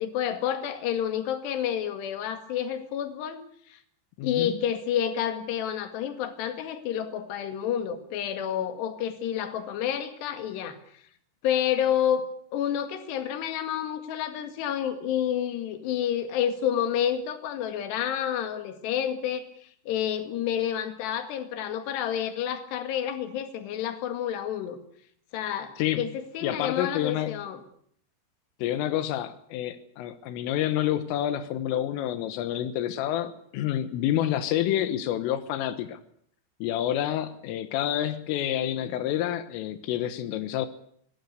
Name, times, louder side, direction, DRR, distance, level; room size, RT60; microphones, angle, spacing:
voice 1, 0.0-3.4 3.7-3.8 4.2-10.8 11.4-12.2 12.5-24.8 25.3-27.6, left 9 dB, 65° left, 8 dB, 3.9 m, -29 dB
voice 2, 4.2-4.6 25.8-26.1 26.4-27.4 28.6-36.0 36.6-40.7, left 12 dB, 90° left, 11 dB, 3.8 m, -28 dB
24.5 x 19.0 x 8.1 m, 0.65 s
omnidirectional pair, 5.7 m